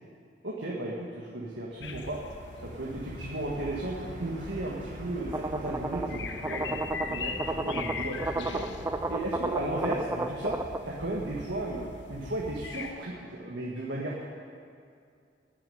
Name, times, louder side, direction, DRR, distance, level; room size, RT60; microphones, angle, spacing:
voice 1, 0.4-0.9 1.3-2.2 2.6-10.5 10.8-14.2, right 1 dB, 90° right, -3 dB, 1.8 m, -35 dB
sound 1, 1.3-11.3, equal, 50° right, 1.7 m, -46 dB
sound 2, 1.8-12.9, left 4 dB, 85° left, 0.9 m, -41 dB
sound 3, 5.3-10.8, right 2 dB, 15° right, 0.5 m, -33 dB
16.5 x 7.0 x 9.3 m, 2.4 s
head